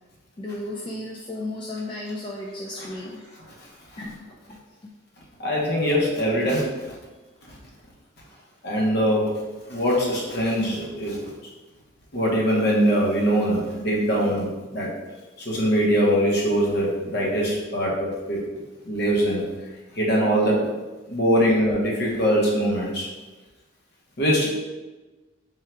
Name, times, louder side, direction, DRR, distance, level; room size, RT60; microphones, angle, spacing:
voice 1, 0.4-3.2 4.0-4.2 4.5-4.6 21.3-21.4, left 1 dB, 25° left, -3 dB, 0.3 m, -34 dB
voice 2, 5.4-6.9 8.6-9.3 9.7-11.3 12.1-14.9 15.4-18.4 18.8-19.4 19.9-20.7 21.1-23.1 24.2-24.5, equal, 55° left, -3 dB, 1.0 m, -22 dB
3.6 x 2.3 x 4.3 m, 1.2 s
head